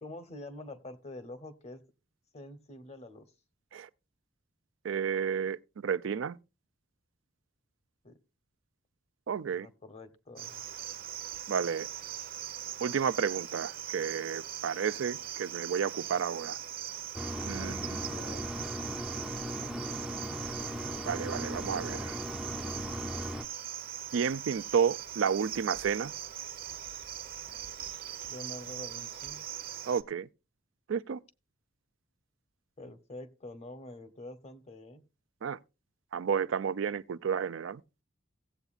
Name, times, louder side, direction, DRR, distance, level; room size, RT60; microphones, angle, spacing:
voice 1, 0.0-1.8 2.3-3.3 8.0-8.2 9.5-10.6 17.6-18.5 28.3-29.5 32.8-35.0, left 1 dB, 35° left, 0.9 m, -46 dB
voice 2, 4.8-6.4 9.3-9.7 11.5-11.9 12.8-16.6 17.4-17.9 21.1-22.2 24.1-26.1 29.9-30.3 30.9-31.2 35.4-35.6 36.1-37.8, right 7 dB, 75° right, 0.4 m, -31 dB
Cricket, 10.4-30.0, right 10 dB, 50° right, 0.8 m, -41 dB
Mechanisms, 17.1-23.4, equal, 5° right, 0.5 m, -38 dB
17.0 x 8.0 x 2.4 m
head